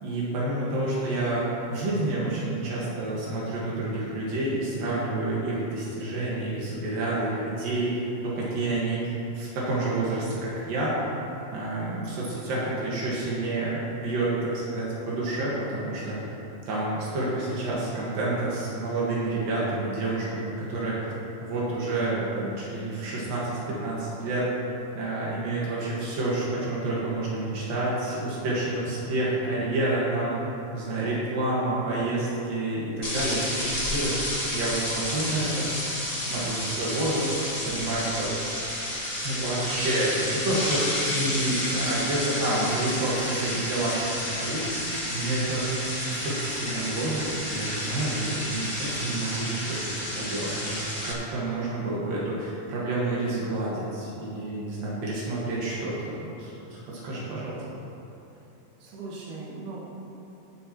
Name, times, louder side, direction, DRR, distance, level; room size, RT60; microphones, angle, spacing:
voice 1, 0.0-11.0 11.5-16.4 16.7-21.0 21.4-24.5 25.0-30.3 30.7-34.2 34.5-35.7 36.2-37.4 37.7-38.3 39.2-44.7 45.1-45.7 46.0-56.5 56.9-57.6, right 2 dB, 85° right, -6 dB, 3.5 m, -29 dB
sound 1, 33.0-51.1, left 1 dB, 45° left, 0.4 m, -31 dB
voice 2, 44.7-45.3 58.8-60.1, right 3 dB, 65° right, -7 dB, 3.2 m, -40 dB
17.5 x 7.8 x 3.1 m, 2.9 s
omnidirectional pair, 3.9 m